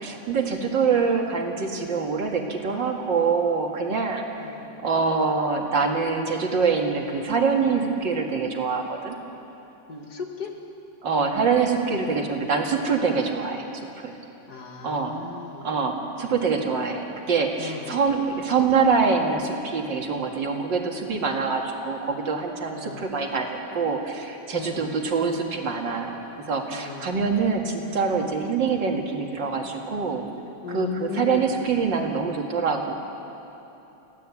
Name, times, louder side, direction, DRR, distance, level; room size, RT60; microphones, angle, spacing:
voice 1, 0.0-4.5 4.8-9.2 11.0-13.7 14.0-14.1 14.8-15.2 15.6-26.1 26.5-30.3 30.7-32.9, right 5 dB, 80° right, 2 dB, 2.7 m, -25 dB
voice 2, 9.9-10.5 14.5-15.8 17.6-18.0 22.7-23.1 24.5-24.9 26.7-27.1 30.6-31.5, left 5 dB, 60° left, 2 dB, 2.4 m, -36 dB
26.0 x 16.0 x 8.4 m, 3.0 s
omnidirectional pair, 2.0 m